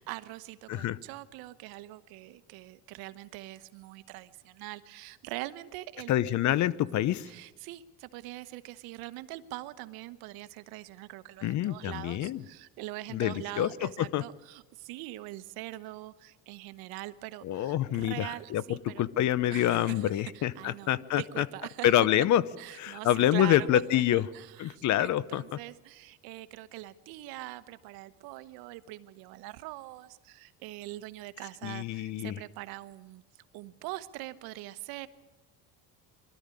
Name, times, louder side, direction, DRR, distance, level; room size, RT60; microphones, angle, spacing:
voice 1, 0.0-6.1 7.2-19.1 19.5-22.1 22.6-33.2 33.5-35.1, right 17 dB, 80° right, 13 dB, 1.1 m, -43 dB
voice 2, 6.1-7.3 11.4-12.4 13.1-13.7 14.0-14.2 17.4-21.5 21.8-22.4 22.7-24.2 24.6-25.6 31.6-32.4, left 12 dB, 50° left, 19 dB, 0.7 m, -27 dB
22.5 x 13.0 x 9.8 m, 1.2 s
cardioid pair, 110°, 37 cm